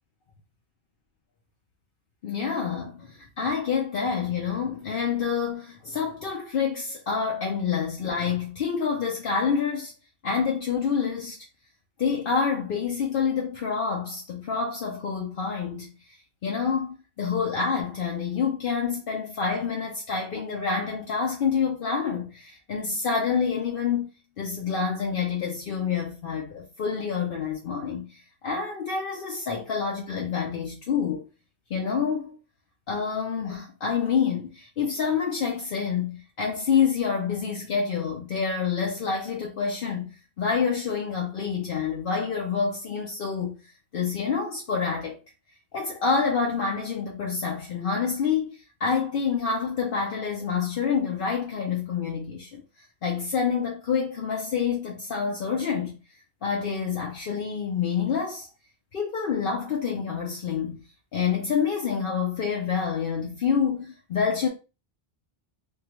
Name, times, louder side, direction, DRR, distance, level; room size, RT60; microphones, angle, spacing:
voice 1, 2.2-9.9 10.2-11.4 12.0-15.9 16.4-24.1 24.4-31.3 31.7-32.4 32.9-43.6 43.9-45.2 45.7-52.6 53.0-56.0 56.4-58.5 58.9-60.8 61.1-64.5, left 6 dB, 65° left, 0.8 m, -27 dB
3.6 x 2.3 x 2.9 m
omnidirectional pair, 1.0 m